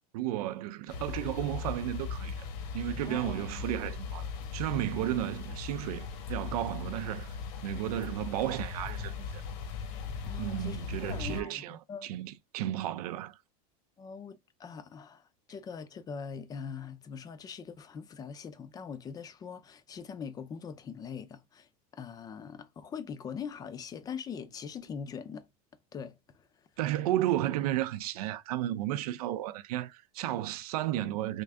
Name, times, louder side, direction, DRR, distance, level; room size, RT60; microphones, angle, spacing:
voice 1, 0.1-2.5 2.7-7.3 7.6-9.4 10.4-13.4 26.8-31.4, right 13 dB, 80° right, 0.5 m, -33 dB
sound 1, 0.9-11.4, left 5 dB, 55° left, 1.0 m, -39 dB
voice 2, 3.0-3.4 10.2-12.1 14.0-15.2 15.5-21.7 22.0-25.5 25.9-26.5, left 6 dB, 20° left, 0.5 m, -42 dB
3.6 x 2.5 x 3.3 m
supercardioid pair, 145°, 19 cm